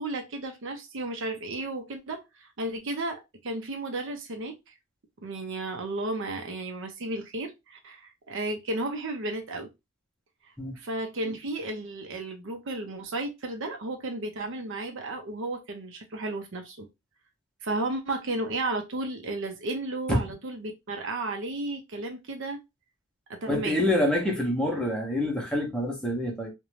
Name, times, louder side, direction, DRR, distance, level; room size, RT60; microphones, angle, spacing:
voice 1, 0.0-4.7 5.2-9.7 10.8-16.9 17.6-22.6 23.3-23.9, right 2 dB, 60° right, 0.6 m, -33 dB
voice 2, 23.5-26.5, left 1 dB, 5° left, 0.7 m, -26 dB
2.6 x 2.1 x 3.1 m
head